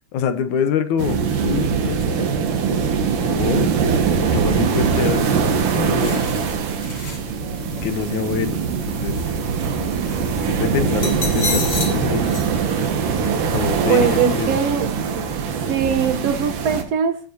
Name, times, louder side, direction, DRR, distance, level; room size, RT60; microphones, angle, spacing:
voice 1, 0.0-2.3 3.3-3.7 4.2-6.2 7.8-8.6 8.9-9.3 10.5-12.2 13.5-14.6, left 7 dB, 75° left, 10 dB, 2.4 m, -25 dB
sound 1, 1.0-16.8, right 6 dB, 90° right, 3.2 m, -22 dB
sound 2, 6.0-12.4, left 3 dB, 35° left, 3.7 m, -32 dB
voice 2, 13.9-14.9 15.2-15.3 15.7-17.2, right 7 dB, 65° right, 8 dB, 1.8 m, -21 dB
17.5 x 8.6 x 2.8 m, 0.39 s
omnidirectional pair, 3.6 m